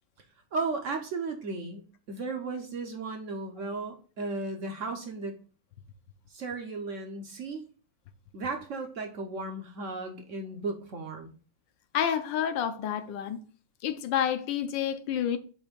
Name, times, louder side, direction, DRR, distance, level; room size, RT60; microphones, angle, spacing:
voice 1, 0.5-5.4 6.3-7.6 8.3-11.3, right 3 dB, 60° right, 0.8 m, -35 dB
voice 2, 11.9-13.4 13.8-15.4, left 9 dB, 70° left, 1.2 m, -29 dB
7.9 x 2.7 x 5.1 m
omnidirectional pair, 2.3 m